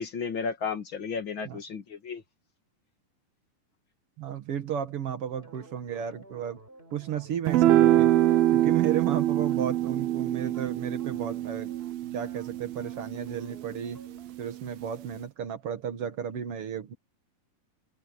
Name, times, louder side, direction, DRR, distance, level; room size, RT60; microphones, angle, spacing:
voice 1, 0.0-2.2, left 5 dB, 45° left, 1.7 m, -33 dB
voice 2, 4.2-6.6 6.9-8.1 8.5-11.7 12.1-14.0 14.4-16.9, right 9 dB, 55° right, 1.6 m, -33 dB
sound 1, 5.3-14.5, right 2 dB, 15° right, 4.9 m, -53 dB
sound 2, 7.5-14.0, right 13 dB, 80° right, 2.7 m, -25 dB
omnidirectional pair, 4.4 m